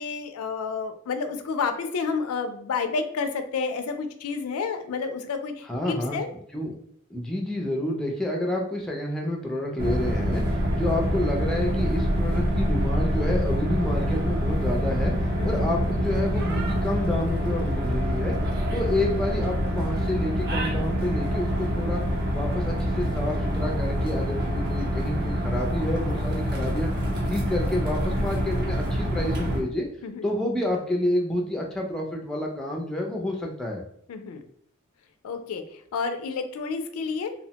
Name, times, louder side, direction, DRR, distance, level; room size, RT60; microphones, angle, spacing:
voice 1, 0.0-6.3 15.4-15.6 30.0-30.3 34.1-34.4 35.2-35.6 35.9-37.3, left 5 dB, 90° left, 7 dB, 0.4 m, -30 dB
voice 2, 5.6-6.2 6.5-6.8 7.1-18.4 18.7-22.0 22.3-26.9 27.2-29.9 30.2-33.8, left 1 dB, 5° left, 0 dB, 0.3 m, -29 dB
sound 1, 9.8-29.6, equal, 50° right, 0.6 m, -26 dB
2.8 x 2.1 x 2.8 m, 0.68 s
head